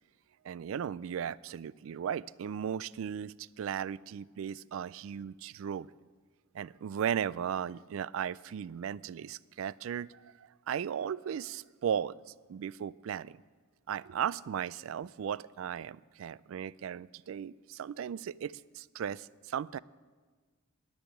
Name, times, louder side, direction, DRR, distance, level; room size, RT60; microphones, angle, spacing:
voice 1, 0.4-5.9 6.5-12.2 12.5-13.4 13.9-19.8, right 8 dB, 70° right, 22 dB, 0.3 m, -36 dB
10.0 x 10.0 x 8.9 m, 1.4 s
head